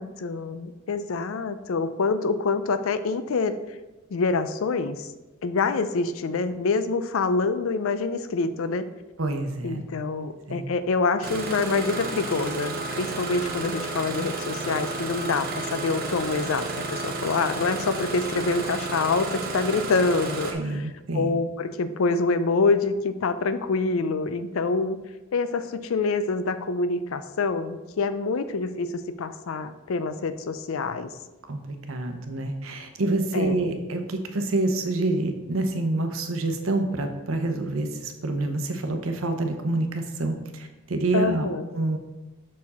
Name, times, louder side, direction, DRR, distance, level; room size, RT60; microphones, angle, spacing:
voice 1, 0.0-3.6 4.1-5.1 5.4-8.9 9.6-20.8 21.1-25.0 25.3-28.9 29.2-31.1 33.3-33.7 41.1-41.6, left 4 dB, 80° left, 11 dB, 0.5 m, -26 dB
voice 2, 9.2-9.8 10.5-10.7 20.5-21.4 31.5-41.5 41.7-42.0, right 2 dB, 85° right, 6 dB, 0.8 m, -27 dB
Engine starting, 11.2-20.5, right 3 dB, 50° right, 0.8 m, -32 dB
6.3 x 4.5 x 4.2 m, 1.1 s
head